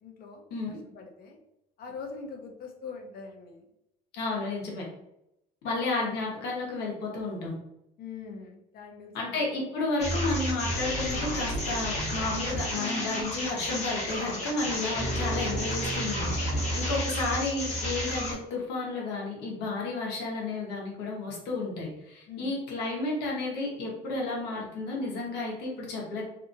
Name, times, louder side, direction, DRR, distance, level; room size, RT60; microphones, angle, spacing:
voice 1, 0.0-1.4 1.8-3.7 8.0-9.6 10.0-10.1 16.6-17.0 22.3-22.6, left 5 dB, 60° left, 2 dB, 0.7 m, -43 dB
voice 2, 4.1-4.8 5.6-7.5 9.1-26.3, left 3 dB, 85° left, -2 dB, 1.0 m, -32 dB
sound 1, 10.0-18.3, equal, 40° left, 1.0 m, -31 dB
2.7 x 2.6 x 2.5 m, 0.84 s
cardioid pair, 110°, 17 cm